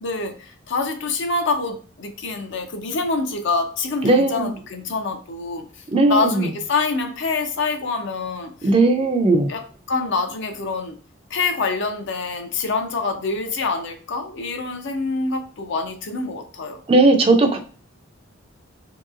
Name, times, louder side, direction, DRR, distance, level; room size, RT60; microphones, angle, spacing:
voice 1, 0.0-5.6 6.1-8.7 9.5-11.0 11.3-16.8, left 3 dB, 60° left, 6 dB, 0.5 m, -26 dB
voice 2, 4.0-4.5 5.9-6.5 8.6-9.5 16.9-17.6, right 2 dB, 30° right, 5 dB, 0.4 m, -17 dB
3.0 x 2.9 x 2.4 m, 0.41 s
head